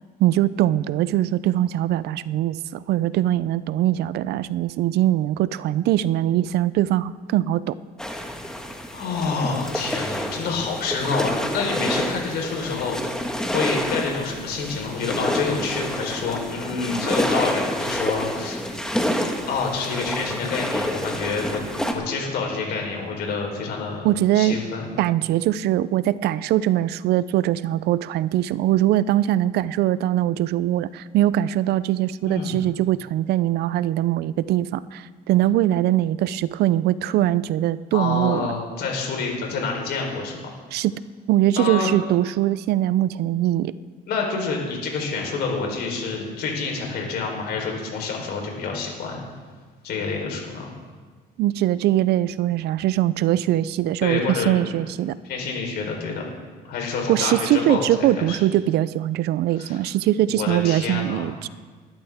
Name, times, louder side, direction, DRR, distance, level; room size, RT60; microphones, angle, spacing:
voice 1, 0.2-7.8 24.0-24.6 25.0-38.5 40.7-41.0 41.3-43.7 51.4-55.2 57.1-61.5, right 13 dB, 75° right, 17 dB, 0.5 m, -22 dB
sound 1, 8.0-21.9, equal, 5° left, 1.5 m, -28 dB
voice 2, 8.9-12.9 13.5-18.9 19.5-21.6 21.9-24.0 24.3-24.9 32.3-32.7 37.9-40.4 41.6-41.9 44.1-49.2 49.8-50.7 54.0-54.5 55.2-56.3 56.7-57.8 58.2-58.4 59.6-59.8 60.3-61.3, left 4 dB, 70° left, 1 dB, 3.9 m, -27 dB
20.5 x 12.0 x 3.6 m, 1.5 s
cardioid pair, 110°, 17 cm